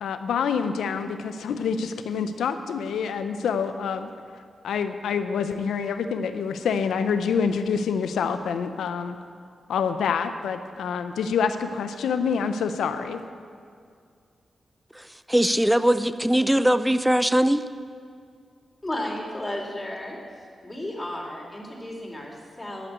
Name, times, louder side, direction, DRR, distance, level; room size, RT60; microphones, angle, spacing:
voice 1, 0.0-4.1 4.6-9.2 9.7-13.2, left 6 dB, 85° left, 9 dB, 0.6 m, -27 dB
voice 2, 15.3-17.6, right 1 dB, 5° right, 13 dB, 0.5 m, -20 dB
voice 3, 18.8-20.2 20.6-22.9, left 1 dB, 20° left, -1 dB, 2.8 m, -33 dB
12.5 x 5.8 x 8.3 m, 2.2 s
cardioid pair, 50°, 0 cm